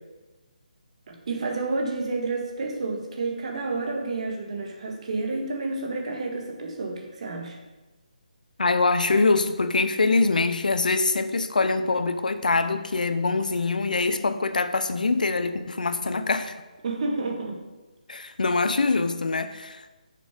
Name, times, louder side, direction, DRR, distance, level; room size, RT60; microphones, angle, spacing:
voice 1, 1.1-7.6 16.8-17.6, right 3 dB, 50° right, 2 dB, 1.9 m, -30 dB
voice 2, 8.6-16.6 18.1-19.9, left 3 dB, 75° left, 10 dB, 0.8 m, -24 dB
11.0 x 6.9 x 5.2 m, 1.2 s
figure-of-eight pair, 155°, 4 cm